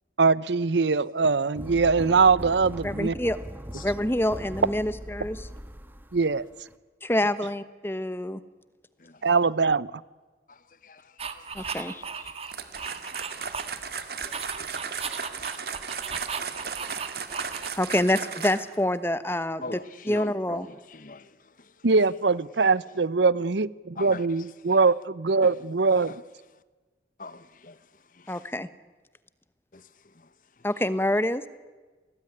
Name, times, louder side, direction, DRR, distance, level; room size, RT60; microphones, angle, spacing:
voice 1, 0.2-3.2 6.1-6.5 9.2-9.9 21.8-26.1, right 4 dB, 85° right, 20 dB, 0.7 m, -22 dB
sound 1, 1.6-6.7, equal, 10° right, 1.3 m, -40 dB
voice 2, 2.8-3.4 3.8-5.4 7.0-8.4 11.5-12.0 17.8-19.8 20.0-20.7 28.3-28.7 30.6-31.4, left 1 dB, 15° left, 14 dB, 1.1 m, -26 dB
sound 2, 11.2-13.9 14.2-18.0, right 5 dB, 35° right, 1.6 m, -36 dB
sound 3, 12.5-18.8, right 6 dB, 60° right, 2.1 m, -35 dB
voice 3, 19.6-20.6 20.9-21.3 24.0-24.2 27.2-27.7, left 3 dB, 50° left, 15 dB, 1.1 m, -40 dB
28.5 x 20.0 x 9.8 m, 1.3 s
head